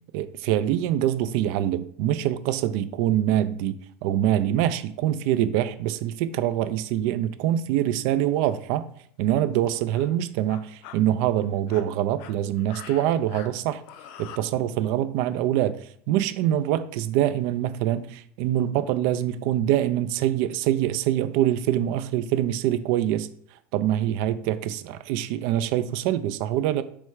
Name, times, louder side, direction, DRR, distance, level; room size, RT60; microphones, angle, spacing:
voice 1, 0.1-8.9 9.2-13.8 14.2-23.3 23.7-26.8, right 12 dB, 65° right, 0.4 m, -24 dB
sound 1, 8.1-8.4 9.2-9.3 9.6-10.1 10.5-11.0 11.5-14.4, left 9 dB, 65° left, 0.5 m, -44 dB
3.4 x 3.2 x 4.7 m
supercardioid pair, 120°, 7 cm